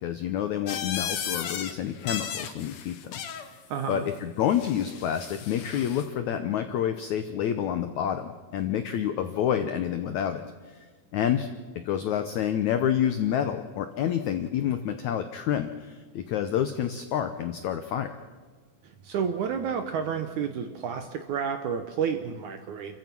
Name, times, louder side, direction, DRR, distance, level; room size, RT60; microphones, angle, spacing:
voice 1, 0.0-3.1 3.9-10.4 11.1-11.5 11.8-18.2, left 9 dB, 85° left, 8 dB, 1.6 m, -28 dB
sound 1, 0.7-1.7 2.0-3.5 4.5-6.1, left 8 dB, 65° left, 1.8 m, -35 dB
voice 2, 3.7-4.1 18.8-23.0, right 7 dB, 70° right, 7 dB, 1.9 m, -30 dB
28.5 x 15.0 x 6.0 m, 1.4 s
omnidirectional pair, 4.6 m